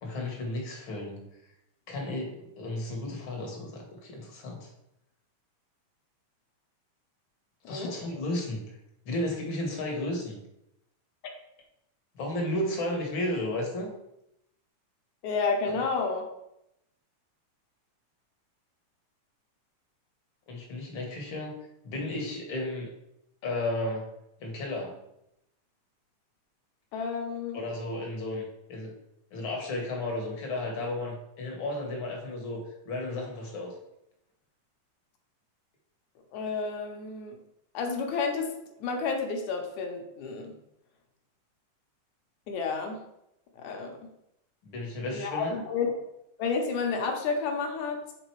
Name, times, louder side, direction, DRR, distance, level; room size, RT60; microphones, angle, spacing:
voice 1, 0.0-1.3 1.9-4.7 7.7-8.6 9.0-10.4 12.1-13.9 20.5-21.6 21.8-22.9 23.4-24.1 24.4-25.0 27.5-28.9 29.3-33.7 44.6-45.5, left 1 dB, 55° left, 0 dB, 1.5 m, -33 dB
voice 2, 15.2-16.2 26.9-27.6 36.3-37.4 37.7-38.5 38.8-40.5 42.5-43.0 43.6-44.0 45.1-45.9 46.4-48.0, left 4 dB, 70° left, 3 dB, 2.1 m, -30 dB
7.7 x 3.7 x 4.6 m, 0.83 s
omnidirectional pair, 3.7 m